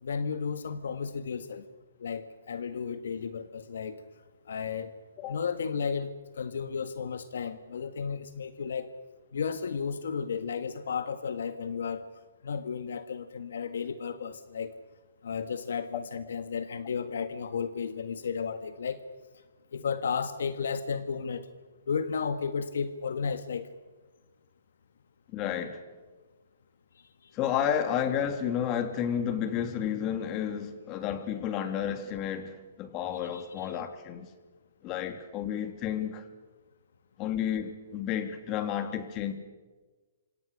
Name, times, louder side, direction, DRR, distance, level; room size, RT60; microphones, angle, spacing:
voice 1, 0.0-1.7 2.0-4.0 4.5-4.9 5.3-8.9 9.3-12.0 12.4-14.7 15.2-19.0 19.7-21.5 21.9-23.7 33.1-33.7, left 6 dB, 75° left, 1.7 m, -33 dB
voice 2, 25.3-25.8 27.3-34.3 34.8-36.2 37.2-39.3, left 9 dB, 35° left, 3.2 m, -31 dB
27.0 x 26.5 x 6.7 m
hypercardioid pair, 130°, 0 cm